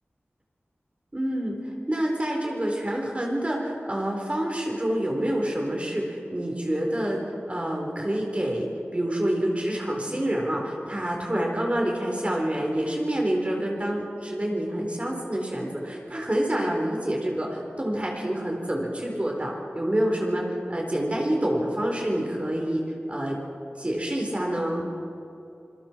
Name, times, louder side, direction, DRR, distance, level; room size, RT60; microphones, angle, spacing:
voice 1, 1.1-7.2 7.5-8.7 8.9-22.8 23.1-23.4 23.8-24.9, right 1 dB, 30° right, -1 dB, 4.0 m, -27 dB
26.5 x 21.5 x 4.5 m, 2.6 s
wide cardioid pair, 65°, 4 cm